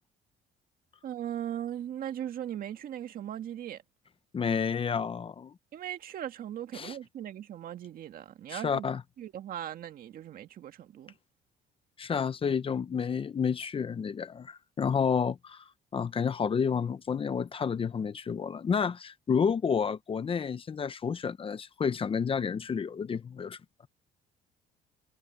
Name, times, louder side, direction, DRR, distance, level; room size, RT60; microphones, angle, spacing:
voice 1, 1.0-3.8 5.7-8.9 9.2-11.2, right 10 dB, 60° right, 1.9 m, -38 dB
voice 2, 4.3-5.5 6.7-6.9 8.5-9.0 12.0-15.6 15.9-23.6, left 6 dB, 30° left, 0.9 m, -30 dB
cardioid pair, 110°, 17 cm